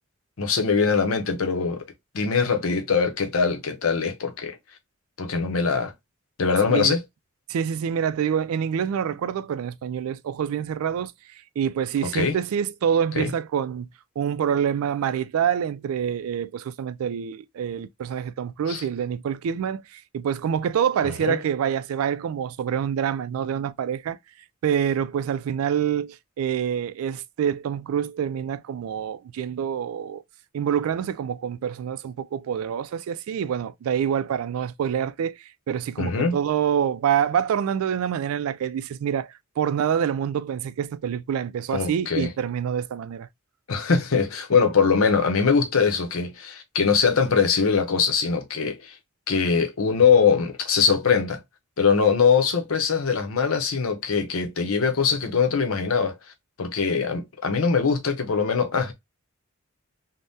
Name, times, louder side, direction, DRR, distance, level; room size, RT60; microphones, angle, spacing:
voice 1, 0.4-1.8 2.1-4.5 5.2-5.9 6.4-7.0 12.1-12.4 13.2-13.3 18.7-18.8 21.2-21.4 36.0-36.4 41.7-42.3 43.7-48.9 49.3-51.4 51.8-56.1 56.6-58.9, left 5 dB, 85° left, 0.7 m, -22 dB
voice 2, 6.7-7.0 7.5-11.1 11.6-13.9 14.2-24.2 24.6-30.2 30.5-43.3, right 8 dB, 85° right, 0.3 m, -26 dB
3.4 x 2.1 x 2.6 m
head